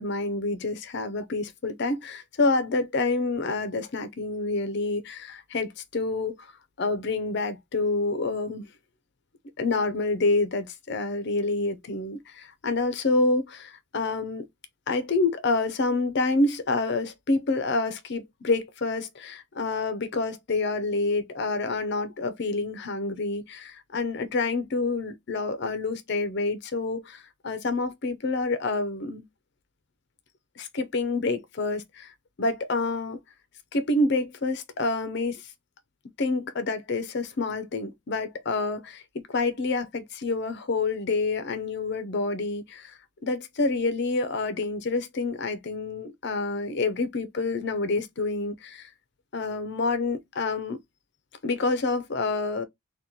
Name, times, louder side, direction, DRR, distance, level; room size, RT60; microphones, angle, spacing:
voice 1, 0.0-6.5 6.8-8.6 9.6-14.5 14.9-29.3 30.6-32.1 32.4-33.2 33.7-35.5 36.2-48.9 49.3-50.8 51.4-52.6, left 3 dB, 55° left, 0.5 m, -28 dB
2.8 x 2.2 x 3.7 m
head